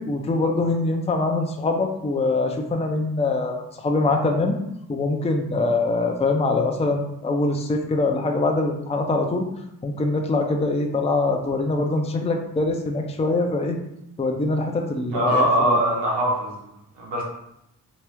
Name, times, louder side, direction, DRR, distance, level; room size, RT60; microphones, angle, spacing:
voice 1, 0.0-4.6 4.9-9.5 9.8-13.8 14.2-15.8, left 2 dB, 15° left, 3 dB, 0.5 m, -23 dB
voice 2, 15.1-17.2, equal, 85° right, -3 dB, 1.1 m, -22 dB
2.9 x 2.4 x 3.5 m, 0.79 s
supercardioid pair, 45°, 41 cm